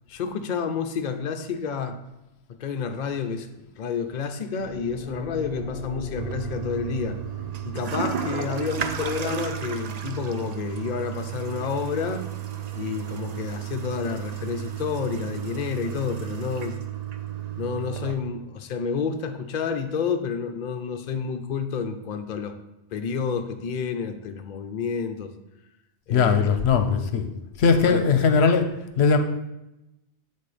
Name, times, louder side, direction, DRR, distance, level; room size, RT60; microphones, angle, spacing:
voice 1, 0.1-2.0 2.5-3.5 3.8-7.2 7.6-12.2 12.7-16.8 17.6-22.5 22.9-25.3 26.1-26.6 27.8-28.1, left 6 dB, 50° left, 6 dB, 0.6 m, -30 dB
sound 1, 4.6-12.8, left 1 dB, 75° right, 3.5 m, -40 dB
Toilet flush, 6.2-18.1, right 9 dB, 50° right, 0.5 m, -33 dB
voice 2, 26.1-27.3 27.6-29.2, left 5 dB, 75° left, 7 dB, 0.9 m, -20 dB
8.2 x 4.3 x 4.9 m, 0.92 s
omnidirectional pair, 1.1 m